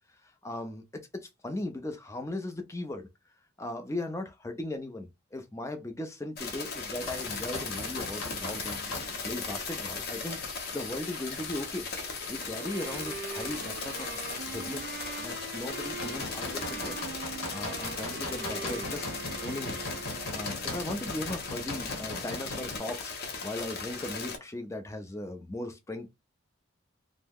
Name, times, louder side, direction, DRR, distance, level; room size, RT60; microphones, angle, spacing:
voice 1, 0.4-3.1 3.6-8.8 9.2-11.9 12.3-14.2 14.4-14.8 15.2-17.0 17.5-19.1 19.4-19.8 20.3-23.2 23.4-26.1, left 1 dB, 15° left, 0.5 m, -38 dB
sound 1, 6.4-24.4, left 4 dB, 50° left, 0.7 m, -38 dB
sound 2, 7.0-22.8, left 2 dB, 85° left, 1.0 m, -41 dB
Wind instrument woodwind instrument, 12.4-20.6, right 4 dB, 55° right, 0.6 m, -42 dB
2.7 x 2.1 x 3.5 m
head